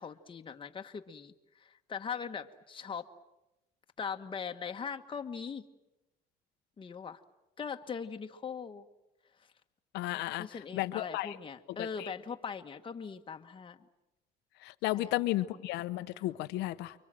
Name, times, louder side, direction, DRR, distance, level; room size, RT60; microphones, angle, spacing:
voice 1, 0.0-1.3 1.6-3.1 4.0-5.7 6.8-7.2 7.6-8.8 10.4-13.8 14.9-15.1, left 6 dB, 30° left, 5 dB, 1.4 m, -40 dB
voice 2, 9.9-11.4 11.8-12.1 14.6-16.9, left 16 dB, 90° left, 12 dB, 1.0 m, -34 dB
29.5 x 24.0 x 7.7 m, 0.95 s
cardioid pair, 110°, 17 cm